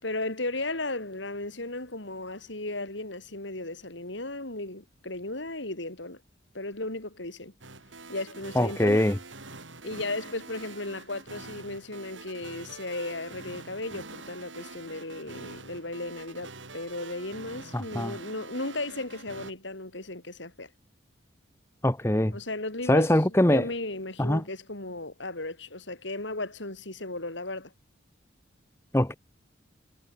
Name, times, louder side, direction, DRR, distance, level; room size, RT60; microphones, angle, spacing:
voice 1, 0.0-6.2 6.5-7.5 8.1-9.1 9.8-20.7 22.3-27.7, left 2 dB, 75° left, 4.9 m, -35 dB
sound 1, 7.6-19.5, right 3 dB, 85° right, 5.9 m, -45 dB
voice 2, 8.5-9.2 17.7-18.2 21.8-22.4 22.9-23.7 24.2-24.4 28.9-29.1, left 1 dB, 15° left, 1.1 m, -23 dB
head